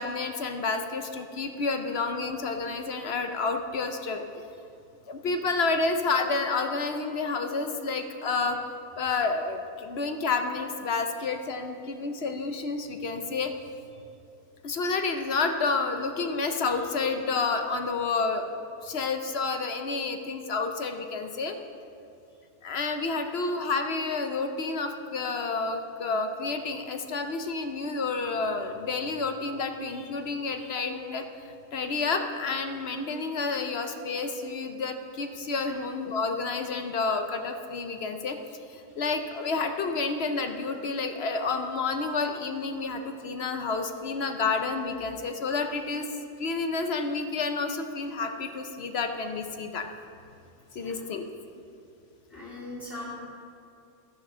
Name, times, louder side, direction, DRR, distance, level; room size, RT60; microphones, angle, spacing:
voice 1, 0.0-4.2 5.1-8.6 9.0-13.5 14.6-18.5 18.8-21.6 22.6-31.2 31.7-38.4 38.7-49.9 50.7-51.2, left 4 dB, 55° left, 5 dB, 0.8 m, -30 dB
voice 2, 52.3-53.1, left 2 dB, 10° left, -8 dB, 2.4 m, -41 dB
14.0 x 6.3 x 6.1 m, 2.6 s
omnidirectional pair, 1.6 m